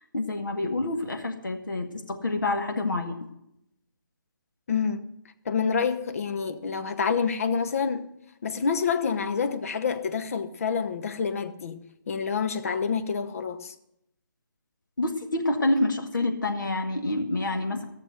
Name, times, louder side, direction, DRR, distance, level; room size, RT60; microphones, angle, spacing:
voice 1, 0.1-3.2 15.0-17.8, left 2 dB, 65° left, 2.0 m, -27 dB
voice 2, 4.7-5.0 5.4-8.1 8.4-13.7, left 6 dB, 45° left, 1.0 m, -28 dB
14.0 x 6.9 x 7.9 m
figure-of-eight pair, 145°, 11 cm